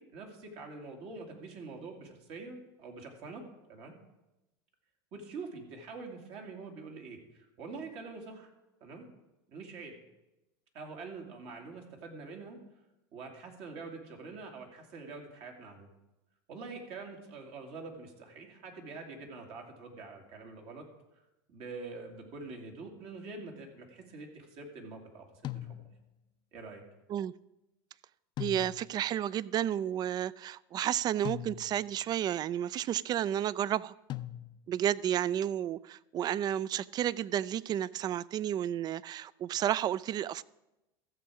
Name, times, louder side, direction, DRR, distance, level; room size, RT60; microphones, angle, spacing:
voice 1, 0.0-3.4 3.7-3.9 5.1-8.5 8.8-9.0 9.5-10.0 10.7-12.6 13.1-15.9 16.5-20.9 21.5-25.8 26.5-26.8, right 3 dB, 60° right, 3 dB, 2.4 m, -45 dB
sound 1, 25.4-26.2 28.4-29.1 31.2-32.0 34.1-34.9, left 13 dB, 40° left, 0.4 m, -41 dB
voice 2, 28.4-33.9 34.7-40.4, right 10 dB, 35° right, 22 dB, 0.3 m, -32 dB
14.0 x 7.2 x 4.8 m, 0.97 s
supercardioid pair, 105°, 11 cm